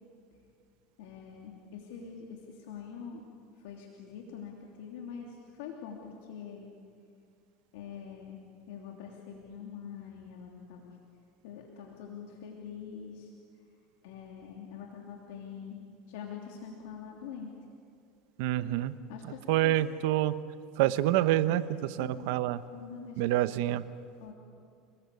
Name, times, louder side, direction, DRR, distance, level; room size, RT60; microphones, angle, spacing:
voice 1, 1.0-3.2 3.6-6.7 7.7-11.0 11.4-13.3 14.0-15.8 16.1-17.6 19.1-19.8 22.0-22.3 22.7-23.2 24.2-24.3, left 7 dB, 80° left, 0 dB, 3.0 m, -44 dB
voice 2, 18.4-19.0 19.2-20.4 20.8-22.6 23.2-23.8, right 14 dB, 75° right, 13 dB, 1.1 m, -27 dB
28.5 x 20.0 x 8.4 m, 2.3 s
supercardioid pair, 130°, 0 cm